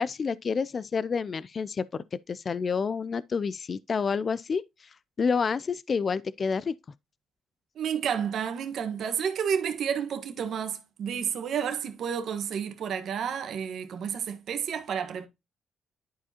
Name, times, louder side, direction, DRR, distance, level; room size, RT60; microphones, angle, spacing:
voice 1, 0.0-4.9 5.2-6.7, left 5 dB, 40° left, 0.3 m, -29 dB
voice 2, 7.7-15.3, right 7 dB, 65° right, 1.3 m, -31 dB
11.0 x 4.8 x 2.8 m
cardioid pair, 90°, 0 cm